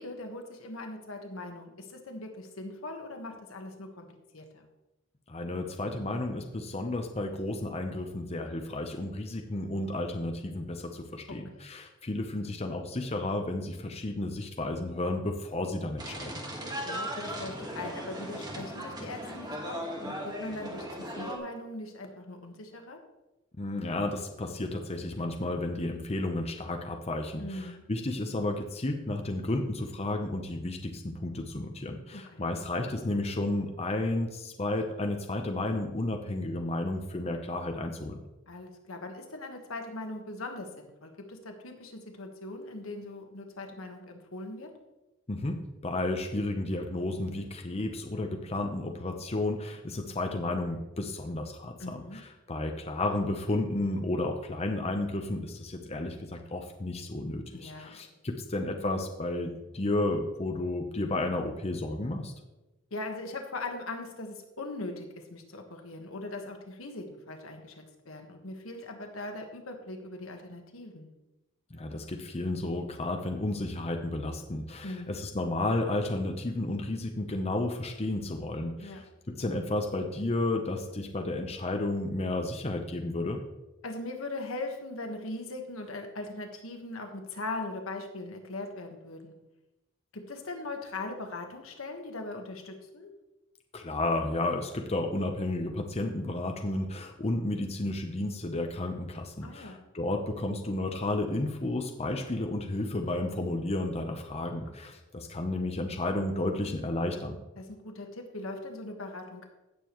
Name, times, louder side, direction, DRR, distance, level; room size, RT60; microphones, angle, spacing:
voice 1, 0.0-4.7 11.3-11.6 16.8-23.0 27.4-27.8 32.1-32.4 38.5-44.7 51.8-52.2 57.5-58.0 62.9-71.1 74.8-75.2 78.8-79.0 83.8-89.4 90.1-93.1 99.4-99.9 107.6-109.5, left 2 dB, 85° left, 4 dB, 1.4 m, -40 dB
voice 2, 5.3-16.3 23.6-38.2 45.3-45.6 45.8-52.2 52.5-62.3 71.7-83.4 93.7-107.4, left 2 dB, 30° left, 4 dB, 0.8 m, -32 dB
sound 1, 16.0-21.4, equal, 20° right, 1.6 m, -38 dB
16.5 x 6.8 x 3.1 m, 1.0 s
head